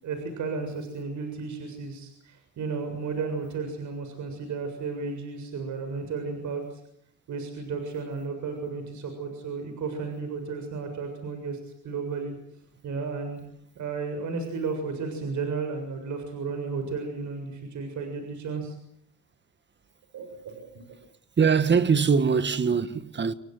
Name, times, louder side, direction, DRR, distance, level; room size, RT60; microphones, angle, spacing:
voice 1, 0.0-6.8 7.3-12.3 12.8-13.4 13.8-18.7 20.1-21.0, right 4 dB, 70° right, 7.2 m, -33 dB
voice 2, 21.4-23.3, right 6 dB, 35° right, 1.7 m, -22 dB
29.0 x 21.5 x 8.0 m
cardioid pair, 90°, 30 cm